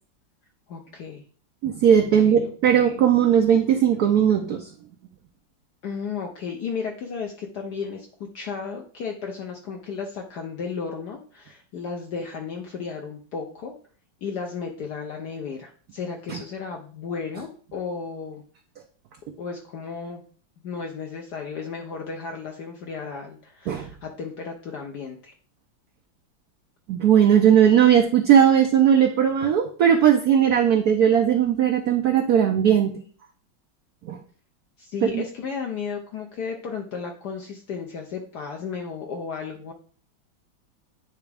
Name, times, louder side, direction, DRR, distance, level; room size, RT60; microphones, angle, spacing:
voice 1, 0.7-1.2 2.2-2.9 5.8-13.7 14.2-18.4 19.4-20.2 20.6-25.3 34.8-39.7, left 5 dB, 65° left, 2 dB, 1.2 m, -34 dB
voice 2, 1.6-4.7 16.3-16.4 23.7-23.9 26.9-32.9 34.0-34.2 35.0-35.2, right 9 dB, 65° right, 4 dB, 1.0 m, -18 dB
9.5 x 3.5 x 3.4 m, 0.44 s
omnidirectional pair, 2.2 m